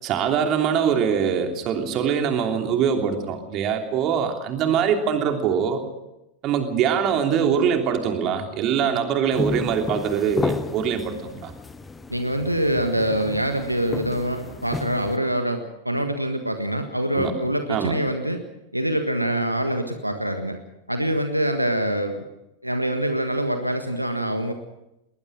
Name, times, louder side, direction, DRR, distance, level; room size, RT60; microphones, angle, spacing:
voice 1, 0.0-5.8 6.4-11.5 17.1-17.3 17.7-17.9, right 7 dB, 35° right, 4 dB, 3.1 m, -23 dB
sound 1, 9.3-15.2, left 3 dB, 15° left, 1.0 m, -32 dB
voice 2, 12.1-18.4 18.7-20.6 20.9-22.2 22.6-24.5, right 1 dB, 90° right, 7 dB, 1.6 m, -25 dB
20.5 x 20.0 x 6.3 m, 0.92 s
figure-of-eight pair, 90°, 0 cm